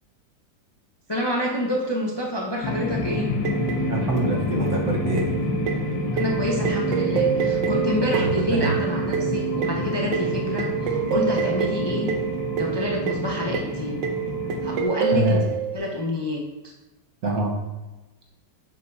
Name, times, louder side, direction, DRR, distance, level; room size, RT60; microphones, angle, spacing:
voice 1, 1.1-3.3 6.1-12.1 12.5-14.1 14.6-15.4 15.7-16.7, left 1 dB, 40° left, -2 dB, 0.3 m, -27 dB
sound 1, 2.6-14.8, left 2 dB, 85° left, 1.5 m, -28 dB
sound 2, 3.4-15.8, right 8 dB, 80° right, 1.3 m, -27 dB
voice 2, 3.9-5.3 8.1-8.7 15.1-15.4 17.2-17.5, right 1 dB, 55° right, -1 dB, 1.6 m, -25 dB
8.0 x 6.6 x 2.7 m, 1.1 s
omnidirectional pair, 1.9 m